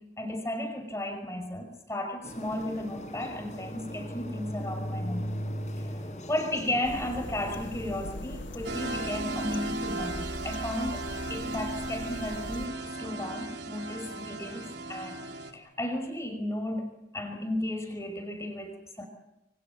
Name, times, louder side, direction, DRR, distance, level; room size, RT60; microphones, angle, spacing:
voice 1, 0.0-5.4 5.7-11.0 11.3-16.9 17.1-19.1, left 1 dB, 15° left, 5 dB, 5.5 m, -34 dB
sound 1, 2.2-9.8, equal, 40° left, 5.9 m, -38 dB
sound 2, 6.8-12.7, left 1 dB, 85° left, 1.6 m, -42 dB
sound 3, 8.6-15.5, right 2 dB, 60° right, 3.6 m, -36 dB
28.5 x 23.5 x 7.5 m, 0.95 s
head